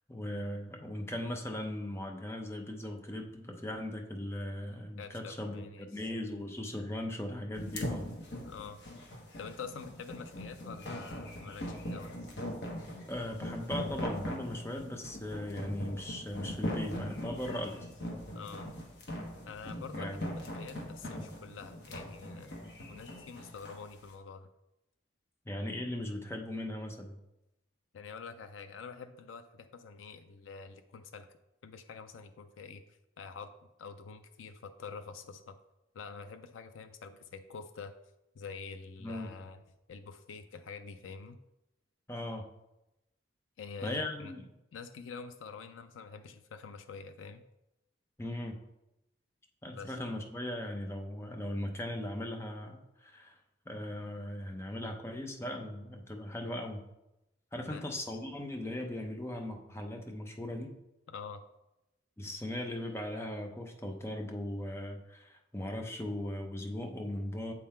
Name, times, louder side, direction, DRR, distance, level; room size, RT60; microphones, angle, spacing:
voice 1, 0.1-8.1 13.1-17.7 20.0-20.3 25.5-27.2 39.0-39.3 42.1-42.4 43.8-44.5 48.2-48.6 49.6-53.4 53.7-56.8 57.5-60.7 62.2-67.5, left 1 dB, 15° left, 3 dB, 0.7 m, -38 dB
voice 2, 5.0-6.1 8.4-9.0 9.4-12.2 18.3-18.7 19.4-22.6 22.9-24.5 27.9-31.3 31.6-33.5 33.8-35.5 35.9-37.9 38.3-39.6 39.9-41.4 43.6-44.3 44.7-47.4 49.6-50.0 57.6-58.2 61.1-61.5, left 5 dB, 90° left, 9 dB, 0.4 m, -46 dB
sound 1, 7.6-23.8, equal, 60° left, 1.2 m, -40 dB
7.4 x 3.8 x 4.3 m, 0.91 s
head